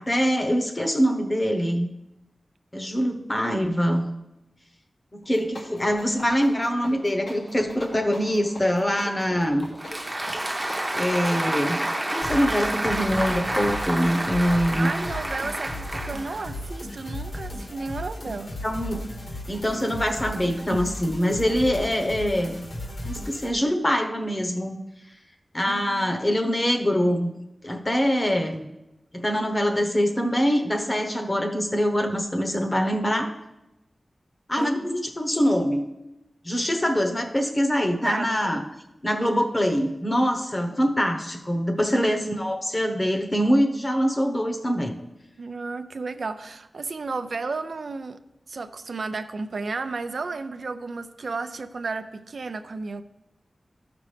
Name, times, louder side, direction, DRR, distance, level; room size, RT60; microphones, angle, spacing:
voice 1, 0.0-1.9 2.7-4.1 5.1-9.7 10.9-11.8 12.1-14.9 18.6-19.0 19.5-22.6 23.0-24.8 25.5-27.3 27.6-28.6 29.1-33.3 34.5-35.8 36.4-38.6 39.0-45.0, equal, 30° left, 4 dB, 1.0 m, -24 dB
sound 1, 5.2-15.5, left 1 dB, 85° left, 1.9 m, -42 dB
Applause, 9.6-16.7, right 1 dB, 20° right, 0.8 m, -29 dB
sound 2, 12.2-23.5, left 1 dB, 65° left, 2.0 m, -36 dB
voice 2, 14.8-18.5 20.7-21.0 25.7-26.4 34.6-34.8 38.0-38.6 41.9-42.0 45.4-48.2 48.5-53.0, right 3 dB, 75° right, 10 dB, 0.5 m, -33 dB
13.0 x 5.9 x 3.4 m, 0.95 s
wide cardioid pair, 75°, 0 cm